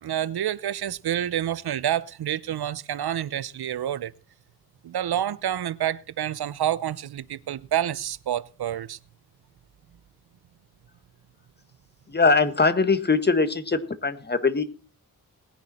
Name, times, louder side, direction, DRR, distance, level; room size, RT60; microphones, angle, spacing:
voice 1, 0.0-4.1 4.8-9.0, right 11 dB, 85° right, 0.8 m, -28 dB
voice 2, 12.1-14.6, left 4 dB, 25° left, 1.7 m, -22 dB
19.5 x 10.5 x 4.3 m
wide cardioid pair, 140°, 37 cm